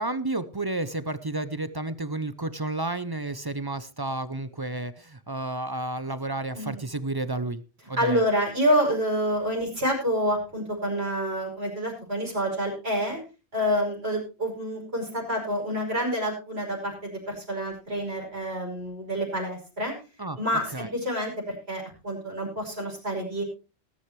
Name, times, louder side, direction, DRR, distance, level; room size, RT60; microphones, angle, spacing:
voice 1, 0.0-7.6 7.9-8.2 20.2-20.4 20.7-20.9, right 2 dB, 25° right, 14 dB, 0.6 m, -31 dB
voice 2, 8.0-13.2 13.5-19.9 20.4-23.4, equal, 80° right, -1 dB, 5.5 m, -28 dB
19.0 x 9.9 x 3.2 m, 0.32 s
omnidirectional pair, 1.1 m